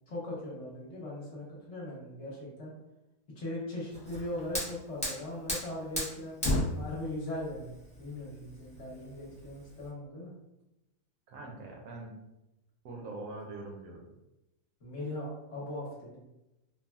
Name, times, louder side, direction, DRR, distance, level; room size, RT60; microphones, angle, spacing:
voice 1, 0.1-2.7 3.4-6.4 6.7-7.7 8.0-10.3 14.8-16.2, left 1 dB, 55° left, -5 dB, 1.1 m, -39 dB
Fire, 3.9-9.9, left 1 dB, 5° left, 0.5 m, -35 dB
voice 2, 11.3-12.1 12.8-14.1, right 2 dB, 70° right, 1 dB, 1.0 m, -43 dB
3.3 x 2.3 x 2.2 m, 0.92 s
omnidirectional pair, 1.6 m